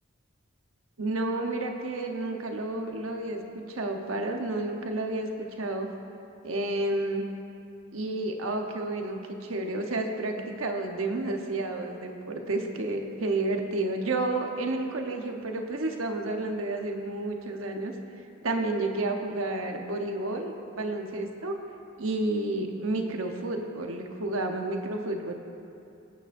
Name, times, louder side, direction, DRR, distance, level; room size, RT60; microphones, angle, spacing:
voice 1, 1.0-5.9 6.4-7.2 7.9-17.9 18.4-21.5 22.0-25.3, right 2 dB, 85° right, 3 dB, 1.0 m, -31 dB
22.5 x 9.1 x 2.6 m, 2.6 s
head